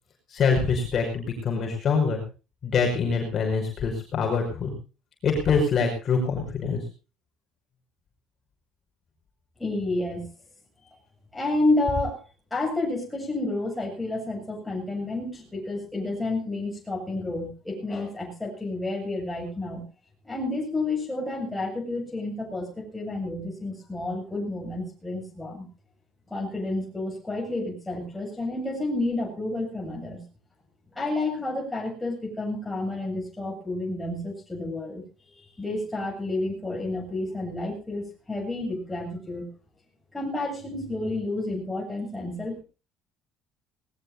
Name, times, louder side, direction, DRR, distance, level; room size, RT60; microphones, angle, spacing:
voice 1, 0.3-2.2 2.6-4.7 5.2-6.8, left 5 dB, 35° left, 1 dB, 5.5 m, -24 dB
voice 2, 9.6-10.3 10.9-11.0 11.3-12.2 12.5-19.9 20.2-25.6 26.3-30.2 30.9-35.0 35.3-39.5 40.1-42.6, left 2 dB, 5° left, -1 dB, 7.8 m, -30 dB
20.0 x 19.0 x 2.7 m, 0.32 s
cardioid pair, 160°, 0 cm